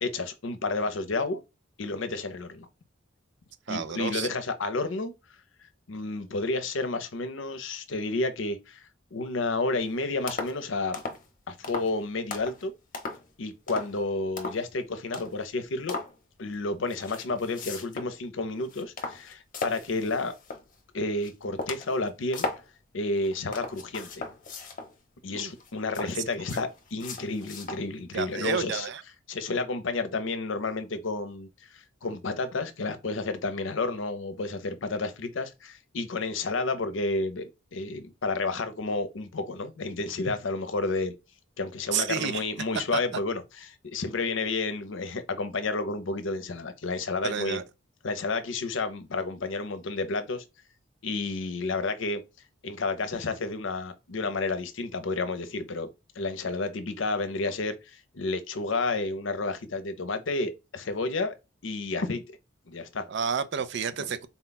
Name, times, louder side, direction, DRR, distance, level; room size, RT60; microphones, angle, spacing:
voice 1, 0.0-1.4 1.8-2.7 3.7-5.1 5.9-8.8 9.1-11.0 11.5-12.7 13.4-16.0 16.4-20.3 20.9-22.5 22.9-24.1 25.2-28.9 29.3-41.1 41.6-47.6 48.0-50.4 51.0-52.2 52.6-55.9 56.2-61.3 61.6-62.4 62.7-63.0, left 3 dB, 70° left, 0.7 m, -31 dB
voice 2, 3.7-4.4 25.3-25.5 28.1-29.0 41.9-42.4 47.2-47.6 63.1-64.3, right 7 dB, 60° right, 0.5 m, -30 dB
sound 1, 9.8-9.9 10.3-10.6 10.9-11.3 11.6-11.9 12.3-12.6 12.9-13.3 13.7-14.0 14.4-14.7 15.1-15.4 15.9-16.2 16.9-18.2 18.5-20.7 21.2-21.3 21.6-22.7 23.2-24.9 25.5-27.9 28.3-28.4, left 3 dB, 45° left, 0.9 m, -37 dB
4.1 x 2.3 x 4.0 m
head